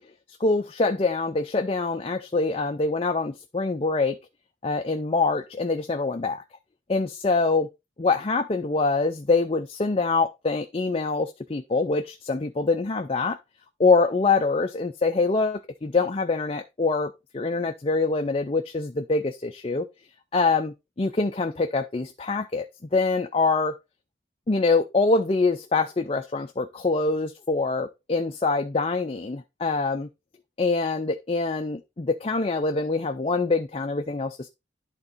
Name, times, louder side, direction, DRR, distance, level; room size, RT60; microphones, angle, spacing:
voice 1, 0.4-4.2 4.6-6.4 6.9-7.7 8.0-13.4 13.8-19.8 20.3-22.7 22.9-23.8 24.5-30.1 30.6-34.5, left 3 dB, 30° left, 0.4 m, -24 dB
11.0 x 3.9 x 4.1 m
head